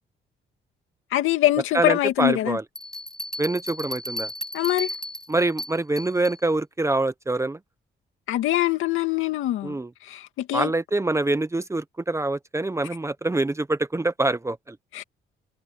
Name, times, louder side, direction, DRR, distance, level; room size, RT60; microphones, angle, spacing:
voice 1, 1.1-2.6 4.5-4.9 8.3-9.7 10.0-10.7 14.9-15.0, left 14 dB, 90° left, 2.2 m, -23 dB
voice 2, 1.7-2.6 3.4-4.3 5.3-7.6 9.6-9.9 10.5-14.8, right 2 dB, 15° right, 0.9 m, -25 dB
sound 1, 2.8-6.4, left 1 dB, 5° left, 3.6 m, -35 dB
cardioid pair, 90°, 20 cm